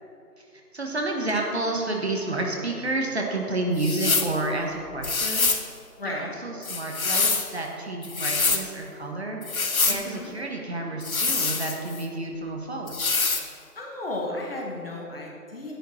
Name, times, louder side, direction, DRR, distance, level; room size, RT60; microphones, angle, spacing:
voice 1, 0.7-5.6 6.0-9.4 9.9-13.0, right 2 dB, 45° right, 1 dB, 1.5 m, -30 dB
sound 1, 3.8-4.3 5.0-5.7 6.6-7.5 8.0-8.6 9.4-10.0 11.0-12.0 12.9-13.5, left 4 dB, 60° left, 1.2 m, -25 dB
voice 2, 6.0-6.4 9.9-10.3 13.8-15.7, left 2 dB, 35° left, -1 dB, 1.9 m, -34 dB
12.0 x 10.5 x 4.4 m, 2.5 s
figure-of-eight pair, 160°, 47 cm